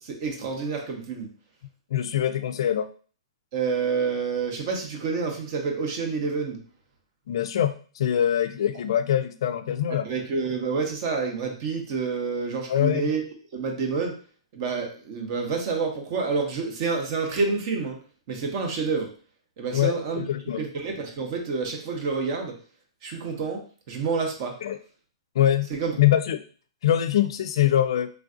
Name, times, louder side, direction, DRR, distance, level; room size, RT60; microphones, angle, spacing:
voice 1, 0.0-1.3 3.5-6.6 10.0-13.2 13.5-14.1 14.5-18.0 18.3-19.1 19.6-20.2 20.5-22.6 23.0-24.6 25.7-25.9, right 4 dB, 45° right, 3 dB, 0.7 m, -28 dB
voice 2, 1.9-2.9 7.3-10.1 12.7-13.1 19.7-20.6 24.6-24.8 25.4-25.7 26.0-26.4 26.8-28.1, left 11 dB, 65° left, 10 dB, 0.3 m, -23 dB
3.2 x 2.5 x 2.4 m, 0.40 s
hypercardioid pair, 145°, 3 cm